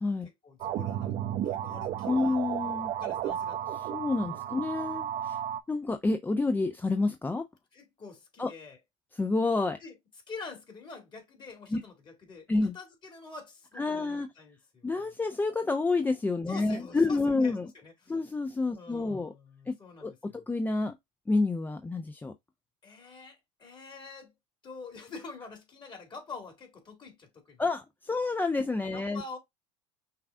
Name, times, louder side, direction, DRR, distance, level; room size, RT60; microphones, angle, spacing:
voice 1, 0.4-1.2 1.4-2.4 2.9-3.7 4.3-4.4 7.7-8.8 9.8-10.0 10.3-14.9 16.5-18.2 18.7-20.4 22.8-24.3 24.6-27.6 28.9-29.4, left 4 dB, 30° left, 2.2 m, -46 dB
sound 1, 0.6-5.6, right 10 dB, 50° right, 0.6 m, -33 dB
voice 2, 2.0-2.9 3.9-5.4 5.7-7.4 8.4-8.5 9.1-9.8 11.7-11.8 12.5-12.8 13.8-14.3 14.8-17.7 18.1-19.3 19.7-19.8 20.0-21.0 21.3-22.3 27.6-29.2, left 3 dB, 10° left, 0.5 m, -29 dB
5.8 x 2.4 x 3.5 m
supercardioid pair, 95°, 15 cm